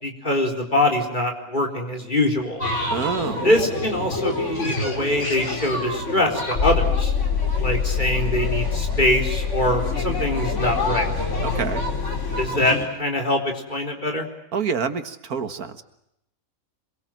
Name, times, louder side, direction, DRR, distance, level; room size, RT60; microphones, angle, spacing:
voice 1, 0.0-2.6 3.4-7.1 7.6-11.1 12.4-14.3, left 1 dB, 30° left, 3 dB, 4.3 m, -23 dB
sound 1, 2.6-12.9, left 1 dB, 55° left, 4.7 m, -29 dB
voice 2, 2.9-3.5 11.4-11.8 14.5-15.8, right 6 dB, 90° right, 10 dB, 2.1 m, -27 dB
sound 2, 6.5-12.5, left 6 dB, 85° left, 2.9 m, -25 dB
26.0 x 23.0 x 7.5 m, 0.80 s
omnidirectional pair, 1.5 m